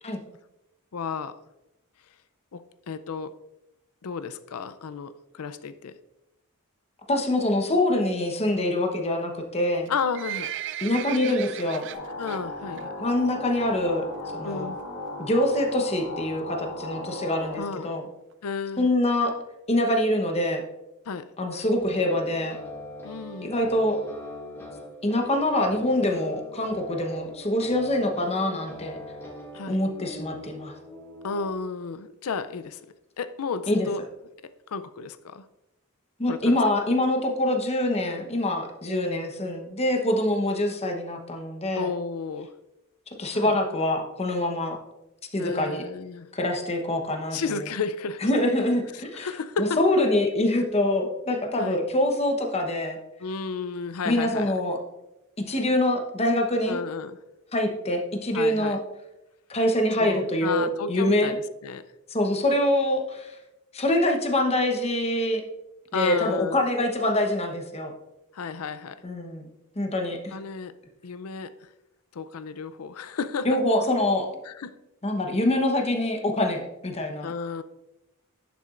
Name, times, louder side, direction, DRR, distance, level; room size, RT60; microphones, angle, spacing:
voice 1, 0.9-1.4 2.5-3.4 4.0-5.9 9.9-10.5 12.2-12.9 14.4-14.8 17.6-17.9 18.4-18.9 21.1-21.3 23.0-23.6 29.5-29.8 31.2-32.8 33.2-34.0 34.7-35.4 36.3-36.6 38.9-39.3 41.7-42.5 43.3-43.6 45.4-46.3 47.3-48.3 48.9-49.8 51.6-51.8 53.2-54.5 56.7-57.2 58.3-58.8 60.0-61.9 65.9-66.6 68.3-69.0 70.3-70.7 71.0-71.7 72.1-73.5 74.4-74.8 77.2-77.6, left 5 dB, 75° left, 13 dB, 0.5 m, -32 dB
voice 2, 7.1-9.9 10.8-11.9 13.0-14.1 14.3-14.7 15.2-18.0 18.8-19.4 19.7-20.6 21.4-22.6 23.4-24.0 25.0-29.0 29.7-30.7 33.7-33.9 36.2-41.9 43.2-44.8 45.3-45.8 46.3-47.6 48.2-49.3 49.6-53.0 54.1-54.8 55.4-56.8 57.5-58.8 59.5-61.4 62.1-63.4 63.7-65.4 65.9-67.9 69.0-69.5 69.8-70.4 73.4-74.3 75.0-77.3, left 1 dB, 30° left, 3 dB, 1.0 m, -25 dB
Livestock farm animals working animals, 9.7-12.4 12.8-13.0 13.4-13.5 14.1-14.2 14.5-14.6 14.8-14.9 15.4-15.7 16.3-16.4 16.6-16.7 16.8-16.9 17.2-17.3 17.7-17.8 18.3-18.4 18.9-19.0, right 12 dB, 55° right, 0.4 m, -36 dB
sound 1, 11.9-17.6, left 2 dB, 55° left, 1.5 m, -36 dB
sound 2, 21.7-31.5, left 1 dB, 10° left, 2.1 m, -41 dB
11.0 x 6.9 x 2.5 m, 0.93 s
head